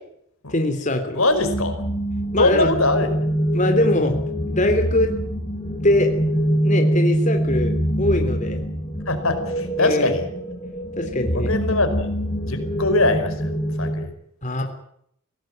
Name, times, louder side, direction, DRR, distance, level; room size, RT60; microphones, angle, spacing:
voice 1, 0.5-1.2 2.3-2.7 3.5-4.2 4.5-5.1 5.8-6.1 6.6-8.6 9.8-10.2 10.9-11.5 14.4-14.6, left 1 dB, 35° left, 4 dB, 3.3 m, -22 dB
voice 2, 1.1-1.8 2.4-3.1 3.7-3.9 9.1-10.2 11.3-12.1 12.5-13.5 13.8-14.1, left 2 dB, 80° left, 8 dB, 5.1 m, -22 dB
sound 1, 1.3-14.0, equal, 20° left, 6.3 m, -24 dB
23.0 x 17.5 x 9.0 m, 0.71 s
head